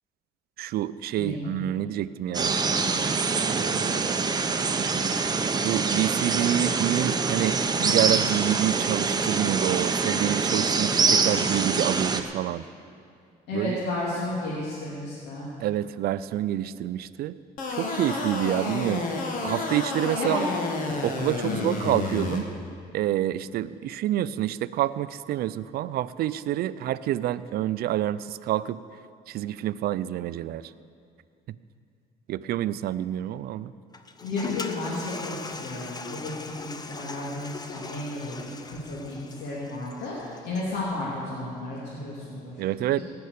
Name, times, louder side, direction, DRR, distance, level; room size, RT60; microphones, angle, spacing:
voice 1, 0.6-2.5 3.4-4.1 5.6-12.6 13.5-13.8 15.6-17.3 17.7-19.0 19.4-20.4 21.0-22.5 22.9-28.8 29.3-30.7 32.3-33.7 42.6-43.0, right 13 dB, 65° right, 15 dB, 0.5 m, -28 dB
voice 2, 1.2-1.5 13.5-15.5 20.2-20.5 21.4-21.8 34.2-42.5 43.0-43.1, left 2 dB, 85° left, -7 dB, 3.1 m, -33 dB
sound 1, 2.3-12.2, right 4 dB, 25° right, 0.9 m, -25 dB
sound 2, 17.6-22.4, left 3 dB, 55° left, 2.1 m, -30 dB
Toilet flush, 33.9-40.9, left 4 dB, 25° left, 0.8 m, -40 dB
17.5 x 6.9 x 8.5 m, 2.3 s
cardioid pair, 110°, 17 cm